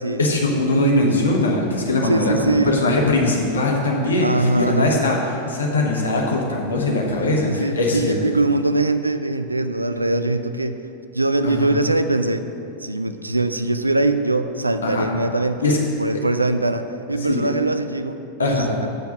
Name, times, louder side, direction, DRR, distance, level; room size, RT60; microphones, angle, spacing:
voice 1, 0.2-8.1 11.4-11.7 14.8-15.0 15.6-15.8 16.1-16.2 17.2-17.5 18.4-18.7, left 2 dB, 70° left, 0 dB, 1.2 m, -21 dB
voice 2, 2.0-2.8 4.2-5.0 7.5-10.8 11.1-12.5 12.8-18.9, right 2 dB, 85° right, 9 dB, 0.4 m, -22 dB
7.8 x 5.9 x 5.7 m, 2.7 s
figure-of-eight pair, 90°, 0 cm